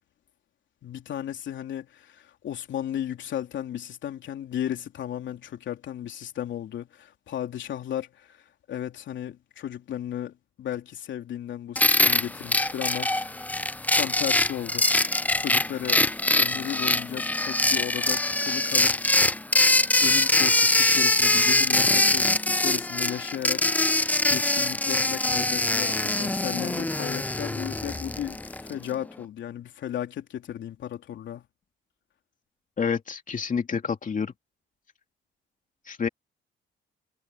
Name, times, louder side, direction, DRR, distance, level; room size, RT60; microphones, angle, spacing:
voice 1, 0.8-8.4 8.7-13.5 13.9-14.9 15.4-16.0 16.4-19.0 20.0-23.7 24.3-31.4, left 10 dB, 70° left, 3.2 m, -35 dB
sound 1, 11.8-28.7, left 2 dB, 10° left, 0.5 m, -23 dB
voice 2, 32.8-34.3 35.9-36.1, left 6 dB, 40° left, 2.6 m, -28 dB
cardioid pair, 90°, 20 cm